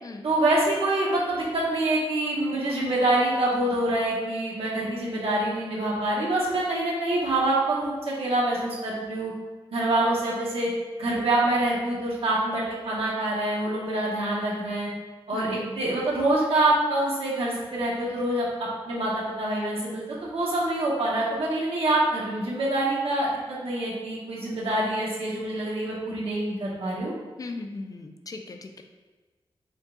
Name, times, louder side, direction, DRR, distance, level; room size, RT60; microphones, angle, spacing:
voice 1, 0.2-9.3 9.7-10.7 11.0-14.9 15.3-27.1, right 1 dB, 75° right, -5 dB, 1.1 m, -26 dB
voice 2, 15.3-15.7 27.4-28.8, left 3 dB, 40° left, 5 dB, 0.4 m, -38 dB
5.2 x 2.3 x 3.7 m, 1.3 s
wide cardioid pair, 130°, 10 cm